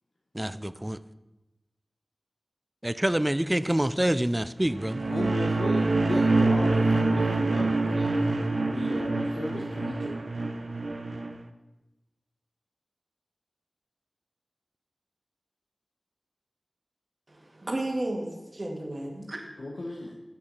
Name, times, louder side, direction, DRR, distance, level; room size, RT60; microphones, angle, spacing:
voice 1, 0.3-1.0 2.8-5.1, right 1 dB, 20° right, 14 dB, 0.4 m, -26 dB
sound 1, 4.7-11.3, right 3 dB, 75° right, 0.7 m, -26 dB
voice 2, 5.1-10.1 19.6-20.1, left 1 dB, 90° left, -2 dB, 1.1 m, -35 dB
voice 3, 17.3-19.4, right 1 dB, 45° right, 2 dB, 1.9 m, -33 dB
8.2 x 6.7 x 6.5 m, 1.0 s
wide cardioid pair, 55°, 0 cm